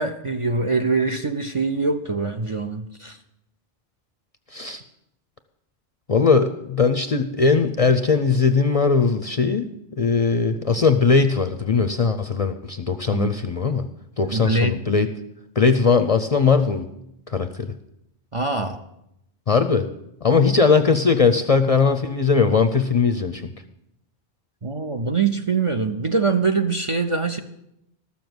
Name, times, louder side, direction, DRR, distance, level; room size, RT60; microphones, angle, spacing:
voice 1, 0.0-3.2 13.1-13.3 14.3-14.7 18.3-18.8 24.6-27.4, right 4 dB, 40° right, 7 dB, 0.5 m, -23 dB
voice 2, 4.5-4.8 6.1-9.7 10.0-13.9 14.2-15.1 15.6-16.9 17.3-17.7 19.5-19.9 20.2-23.4, left 5 dB, 45° left, 9 dB, 0.5 m, -19 dB
13.0 x 7.0 x 7.9 m, 0.81 s
omnidirectional pair, 1.1 m